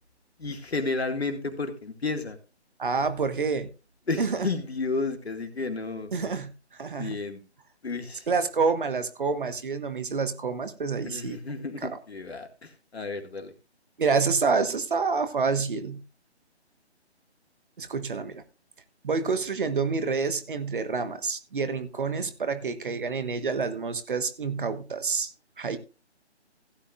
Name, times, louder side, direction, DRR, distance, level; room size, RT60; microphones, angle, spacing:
voice 1, 0.4-2.4 4.1-6.1 7.0-7.4 7.8-8.3 11.0-13.5, left 3 dB, 65° left, 6 dB, 2.1 m, -32 dB
voice 2, 2.8-3.7 4.2-4.5 6.1-6.5 6.8-7.2 8.3-11.4 11.8-11.9 14.0-16.0 17.8-18.4 19.0-25.3 25.6-25.8, right 4 dB, 50° right, 10 dB, 1.3 m, -28 dB
16.0 x 9.5 x 2.5 m, 0.32 s
figure-of-eight pair, 150°, 34 cm